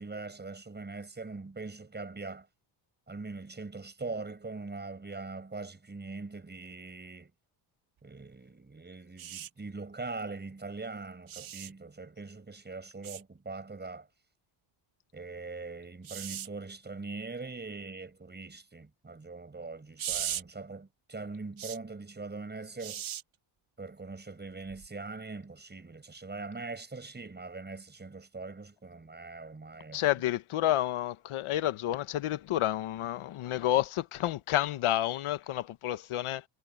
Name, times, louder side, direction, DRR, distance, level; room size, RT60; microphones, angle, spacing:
voice 1, 0.0-2.5 3.1-7.3 8.0-14.1 15.1-23.0 23.8-30.0, right 3 dB, 20° right, 6.9 m, -42 dB
sound 1, 9.2-9.5 11.3-11.7 13.0-13.2 16.0-16.5 20.0-20.4 21.6-21.8 22.8-23.2 24.7-24.9, right 10 dB, 75° right, 2.9 m, -37 dB
voice 2, 29.9-36.4, left 13 dB, 90° left, 1.1 m, -30 dB
wide cardioid pair, 145°, 48 cm